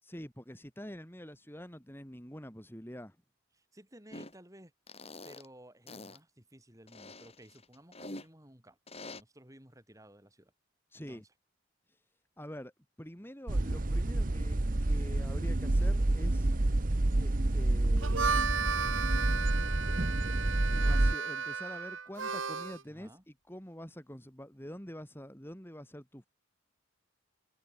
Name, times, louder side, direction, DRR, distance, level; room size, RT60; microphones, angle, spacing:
voice 1, 0.0-3.2 10.9-11.2 12.4-12.7 13.0-16.5 17.2-18.6 20.8-23.1 23.5-26.3, equal, 10° left, 5.1 m, -46 dB
voice 2, 3.5-4.7 5.0-8.8 9.0-10.5 10.9-11.2 22.9-23.2, right 1 dB, 15° right, 6.6 m, -56 dB
sound 1, 4.1-4.3 4.9-5.5 5.9-6.2 6.9-8.3 8.9-9.2, left 2 dB, 30° left, 6.9 m, -46 dB
sound 2, 13.5-21.1, right 2 dB, 45° right, 1.0 m, -28 dB
Harmonica, 17.9-22.8, right 6 dB, 90° right, 2.2 m, -34 dB
head